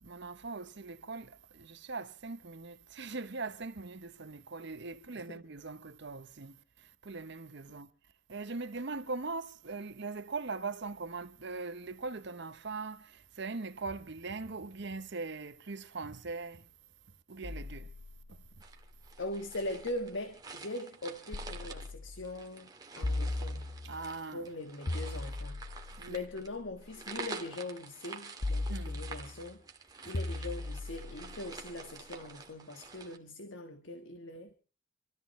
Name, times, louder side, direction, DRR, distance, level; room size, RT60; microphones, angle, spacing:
voice 1, 0.0-7.9 8.3-16.6 17.3-17.9 23.8-24.5 26.0-26.2 28.7-29.0, right 3 dB, 55° right, 0.9 m, -41 dB
sound 1, 17.4-20.2 21.3-22.4 23.0-24.1 24.9-27.1 28.4-29.5 30.1-32.3, left 2 dB, 40° left, 0.7 m, -39 dB
sound 2, 18.6-33.2, right 4 dB, 20° right, 1.9 m, -48 dB
voice 2, 19.2-23.7 24.3-34.5, left 1 dB, 65° left, 1.4 m, -41 dB
26.5 x 13.5 x 3.2 m
head